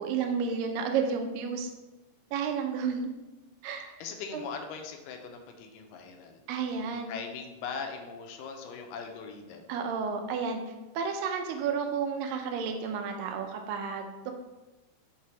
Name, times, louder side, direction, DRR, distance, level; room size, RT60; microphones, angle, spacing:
voice 1, 0.0-1.7 2.3-3.1 3.6-3.9 4.3-4.5 6.5-7.1 9.7-10.6 11.0-14.3, right 6 dB, 85° right, 4 dB, 2.4 m, -31 dB
voice 2, 4.0-6.4 6.9-9.6, left 5 dB, 90° left, 4 dB, 2.3 m, -40 dB
6.4 x 3.4 x 4.4 m, 1.1 s
omnidirectional pair, 3.9 m